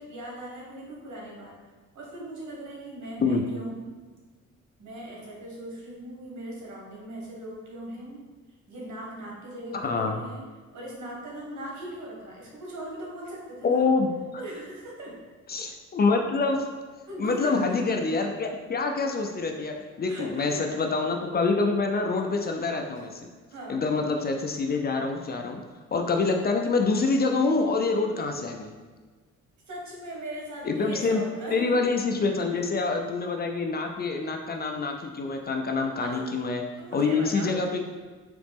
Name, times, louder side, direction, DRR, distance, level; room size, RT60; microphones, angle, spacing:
voice 1, 0.0-1.6 1.9-3.9 4.8-8.2 8.7-10.4 10.7-14.0 14.4-15.2 17.1-17.8 20.1-20.8 23.5-23.9 29.7-31.8 32.3-32.9 36.0-36.3 36.8-37.5, right 1 dB, 70° right, -3 dB, 1.4 m, -39 dB
voice 2, 9.7-10.2 13.6-14.1 15.5-16.7 17.2-23.2 23.7-25.6 25.9-28.7 30.6-31.2 31.5-36.6 36.9-37.8, left 4 dB, 35° left, 3 dB, 0.4 m, -26 dB
4.0 x 3.0 x 3.4 m, 1.4 s
cardioid pair, 90°, 30 cm